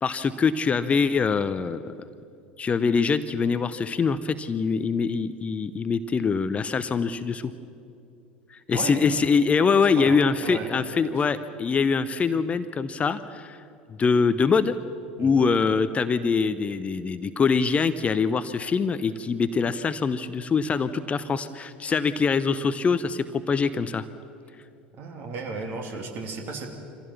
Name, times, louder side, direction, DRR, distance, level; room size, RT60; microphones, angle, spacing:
voice 1, 0.0-1.9 2.6-7.5 8.5-13.6 14.0-14.7 15.2-24.0, left 5 dB, 25° left, 13 dB, 0.7 m, -24 dB
voice 2, 8.7-9.1 9.9-10.7 15.2-15.4 24.9-26.7, right 4 dB, 45° right, 2 dB, 3.1 m, -35 dB
25.5 x 15.5 x 7.2 m, 2.6 s
figure-of-eight pair, 70°, 5 cm